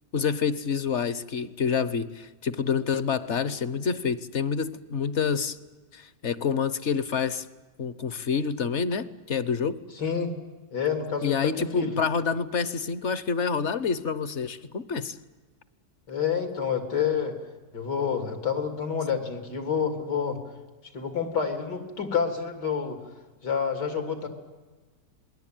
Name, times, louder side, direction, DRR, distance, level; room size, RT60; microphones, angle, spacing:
voice 1, 0.1-5.6 5.9-7.5 7.8-9.8 11.2-15.2, left 6 dB, 50° left, 15 dB, 1.1 m, -27 dB
voice 2, 10.0-10.3 10.7-12.0 16.1-17.3 17.7-20.4 20.9-23.0 23.4-24.3, left 7 dB, 80° left, 6 dB, 3.7 m, -28 dB
27.0 x 20.5 x 9.1 m, 1.3 s
omnidirectional pair, 1.8 m